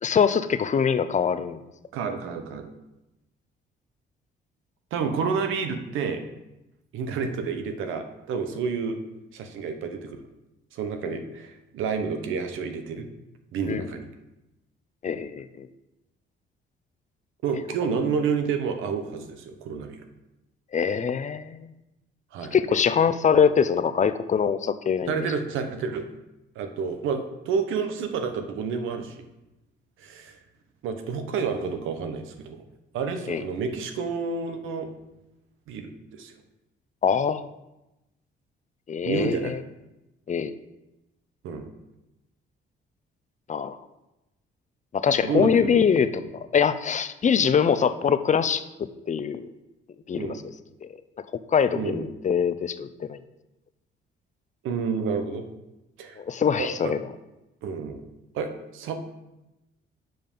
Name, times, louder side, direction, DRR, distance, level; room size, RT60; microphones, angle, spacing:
voice 1, 0.0-1.6 11.1-11.2 13.7-13.8 15.0-15.7 20.7-21.7 22.5-25.3 33.3-33.4 37.0-37.5 38.9-39.6 40.3-40.5 43.5-43.8 44.9-46.1 46.5-48.6 49.1-49.5 50.1-50.3 50.8-50.9 51.5-53.2 56.2-57.0, left 7 dB, 40° left, 12 dB, 0.5 m, -23 dB
voice 2, 1.9-2.7 4.9-6.2 6.9-9.0 9.3-10.2 10.7-13.1 13.5-14.1 15.2-15.3 17.4-20.0 22.3-22.6 25.1-26.0 26.5-29.2 30.0-30.4 30.8-32.6 32.9-34.9 35.7-36.4 39.0-39.5 41.4-41.7 45.1-45.8 50.1-50.4 51.7-52.1 54.6-55.4 56.0-56.2 56.6-56.9 57.6-58.1 58.3-59.0, right 5 dB, 85° right, 7 dB, 0.9 m, -29 dB
7.7 x 5.1 x 5.4 m, 0.96 s
cardioid pair, 90°, 20 cm